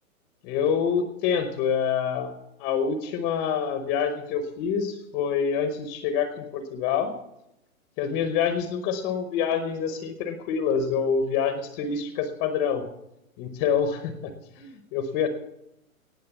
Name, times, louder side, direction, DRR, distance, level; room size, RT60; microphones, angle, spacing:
voice 1, 0.4-2.3 2.6-7.1 8.0-12.8 13.4-15.3, left 7 dB, 20° left, 8 dB, 0.8 m, -26 dB
18.0 x 6.6 x 8.0 m, 0.84 s
hypercardioid pair, 145°, 43 cm